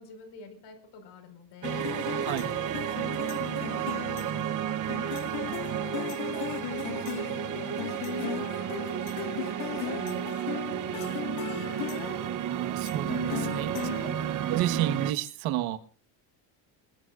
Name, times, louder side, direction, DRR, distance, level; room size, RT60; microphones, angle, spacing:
voice 1, 0.0-1.9 2.5-5.0 5.8-12.0, left 5 dB, 65° left, 8 dB, 5.2 m, -49 dB
sound 1, 1.6-14.8, left 18 dB, 80° left, 0.7 m, -38 dB
sound 2, 1.6-15.1, right 11 dB, 45° right, 0.8 m, -32 dB
voice 2, 12.4-13.7 14.5-15.8, right 12 dB, 90° right, 8 dB, 1.5 m, -30 dB
21.0 x 21.0 x 2.5 m, 0.38 s
cardioid pair, 135°, 45 cm